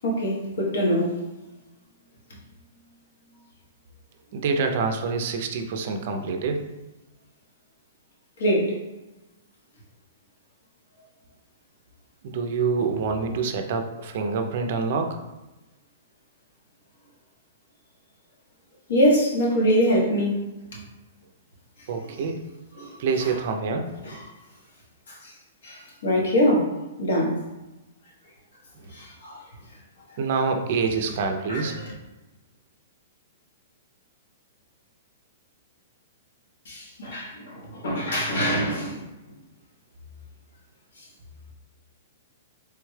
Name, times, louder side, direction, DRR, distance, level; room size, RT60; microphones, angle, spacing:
voice 1, 0.0-1.2 8.4-8.8 18.9-20.5 20.7-20.8 22.0-22.3 22.7-23.3 24.0-24.2 25.1-25.3 25.6-27.4 28.9-29.4 31.5-31.9 36.7-39.0 41.0-41.1, equal, 75° left, -2 dB, 1.1 m, -24 dB
voice 2, 4.3-6.7 12.2-15.2 21.9-22.4 23.0-23.9 30.2-31.8, right 4 dB, 50° right, 5 dB, 0.4 m, -26 dB
3.3 x 2.2 x 3.1 m, 1.0 s
hypercardioid pair, 160°, 0 cm